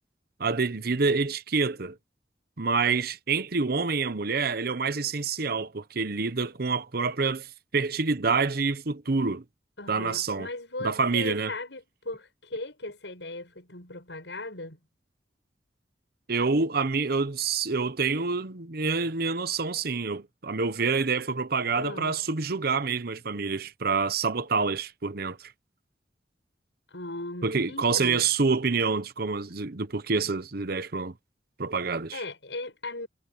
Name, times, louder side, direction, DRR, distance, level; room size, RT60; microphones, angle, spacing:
voice 1, 0.4-2.0 2.6-7.5 7.7-9.4 9.9-10.5 10.8-11.5 16.3-25.5 27.4-31.1 31.6-32.2, right 4 dB, 60° right, 1.0 m, -27 dB
voice 2, 9.8-14.8 21.8-22.2 26.9-28.3 32.1-33.1, left 2 dB, 85° left, 7.9 m, -38 dB
head